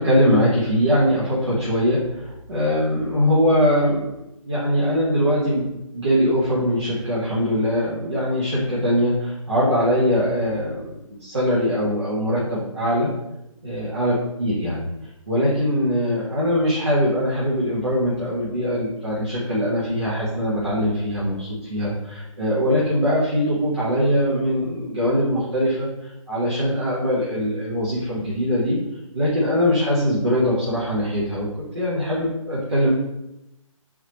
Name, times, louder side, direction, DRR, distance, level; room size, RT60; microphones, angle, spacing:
voice 1, 0.0-4.1 4.5-5.7 5.9-13.1 13.6-14.9 15.3-25.9 26.3-28.8 29.1-31.5 31.7-32.9, equal, 50° right, -8 dB, 1.1 m, -22 dB
3.8 x 3.2 x 3.0 m, 0.90 s
hypercardioid pair, 180°, 18 cm